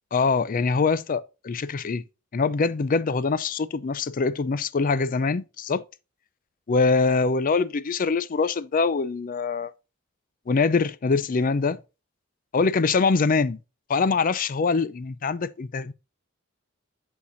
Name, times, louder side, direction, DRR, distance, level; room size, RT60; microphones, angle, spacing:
voice 1, 0.1-2.0 2.3-5.8 6.7-9.7 10.5-11.8 12.5-13.6 13.9-15.9, left 4 dB, 45° left, 0.4 m, -23 dB
8.5 x 6.5 x 2.5 m
head